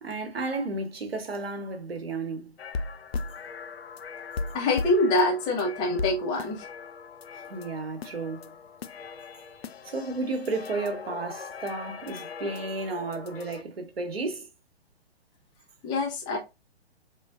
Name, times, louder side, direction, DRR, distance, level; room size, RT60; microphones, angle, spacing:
voice 1, 0.0-2.6 7.5-8.5 9.8-14.5, right 3 dB, 65° right, 1.0 m, -33 dB
sound 1, 2.6-13.6, left 4 dB, 70° left, 0.5 m, -38 dB
voice 2, 4.5-6.7 15.8-16.4, left 2 dB, 15° left, 0.7 m, -25 dB
4.1 x 2.9 x 2.4 m
figure-of-eight pair, 125°, 32 cm